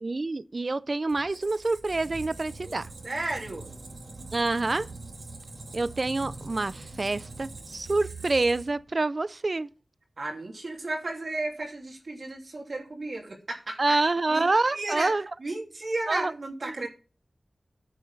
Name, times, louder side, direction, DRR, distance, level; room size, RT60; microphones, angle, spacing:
voice 1, 0.0-2.9 4.3-4.9 5.7-9.7 13.8-15.2 16.1-16.3, right 3 dB, 50° right, 0.5 m, -27 dB
Squeak, 1.1-8.9, right 3 dB, 80° right, 2.3 m, -43 dB
voice 2, 3.0-3.7 10.2-15.1 15.4-16.9, right 2 dB, 65° right, 2.8 m, -34 dB
9.7 x 7.0 x 5.5 m
wide cardioid pair, 75°, 0 cm